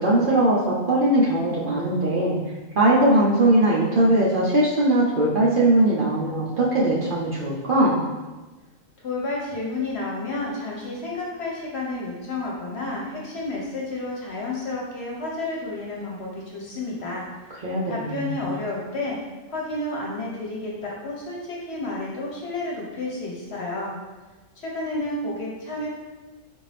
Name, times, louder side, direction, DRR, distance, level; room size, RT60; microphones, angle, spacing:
voice 1, 0.0-2.4 2.7-8.0 17.6-18.3, right 1 dB, 55° right, -7 dB, 0.6 m, -20 dB
voice 2, 9.0-17.5 17.9-19.2 19.5-23.9 24.6-25.9, left 2 dB, 55° left, -3 dB, 1.0 m, -31 dB
4.2 x 2.6 x 3.3 m, 1.2 s
omnidirectional pair, 1.4 m